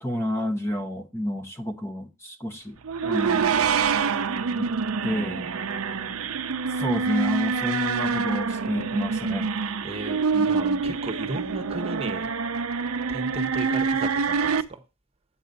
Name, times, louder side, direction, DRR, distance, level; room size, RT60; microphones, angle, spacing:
voice 1, 0.0-2.8 3.0-3.7 4.6-4.8 5.0-5.5 6.7-9.5 10.3-10.8, equal, 15° left, 1.0 m, -30 dB
sound 1, 2.8-14.6, right 5 dB, 80° right, 0.6 m, -26 dB
voice 2, 9.8-12.3 13.1-14.8, right 2 dB, 30° right, 1.1 m, -35 dB
8.8 x 7.0 x 4.0 m
head